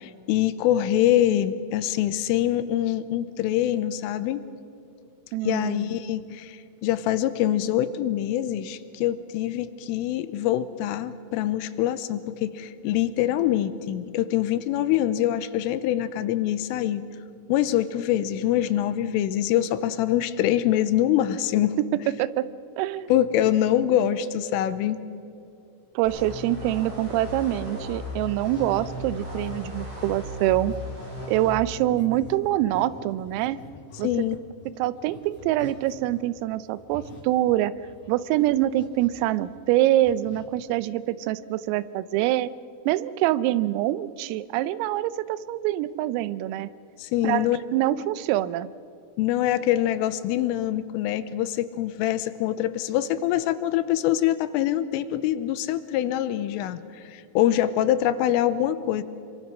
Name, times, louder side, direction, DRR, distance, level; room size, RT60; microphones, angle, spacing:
voice 1, 0.0-4.4 5.5-17.0 17.5-21.8 23.1-25.0 34.0-34.4 47.0-47.6 49.2-59.0, left 12 dB, 85° left, 13 dB, 3.3 m, -24 dB
voice 2, 5.3-6.0 22.2-22.4 22.8-23.1 26.0-30.7 31.3-33.6 34.0-34.1 34.8-37.7 38.1-42.5 42.9-46.7 47.2-48.7, right 14 dB, 90° right, 16 dB, 3.4 m, -25 dB
sound 1, 26.0-31.5, left 2 dB, 60° right, 10.0 m, -36 dB
sound 2, 28.4-36.3 36.7-39.8 40.0-40.5, left 4 dB, 55° left, 2.8 m, -48 dB
26.0 x 24.0 x 6.2 m, 2.6 s
omnidirectional pair, 5.9 m